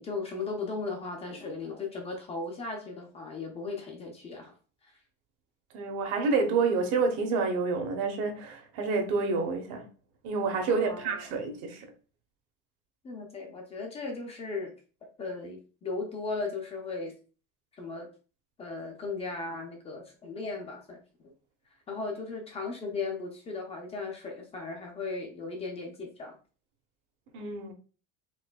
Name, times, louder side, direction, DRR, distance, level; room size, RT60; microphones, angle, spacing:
voice 1, 0.0-4.5 4.8-4.9 10.7-11.3 13.0-14.7 15.2-17.2 17.7-18.1 18.6-21.0 21.9-26.4, left 3 dB, 20° left, 0.5 m, -37 dB
voice 2, 5.7-9.8 10.2-11.9 27.3-27.7, right 4 dB, 60° right, 0.9 m, -28 dB
4.6 x 2.6 x 2.2 m
cardioid pair, 175°, 31 cm